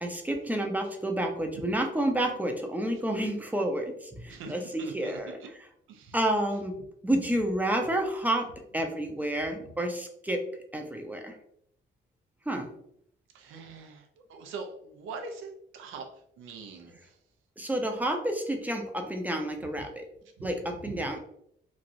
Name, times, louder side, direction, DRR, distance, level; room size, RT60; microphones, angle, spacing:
voice 1, 0.0-5.4 6.1-6.7 7.0-8.4 8.7-10.4 10.7-11.3 12.5-12.7 17.6-20.0 20.4-21.2, right 1 dB, 10° right, 3 dB, 0.5 m, -30 dB
voice 2, 4.3-5.5 5.9-6.2 13.3-14.0 14.3-16.0 16.4-17.0 20.4-20.5 20.8-21.1, right 4 dB, 90° right, 5 dB, 0.6 m, -42 dB
3.1 x 2.4 x 2.5 m, 0.69 s
cardioid pair, 90°, 20 cm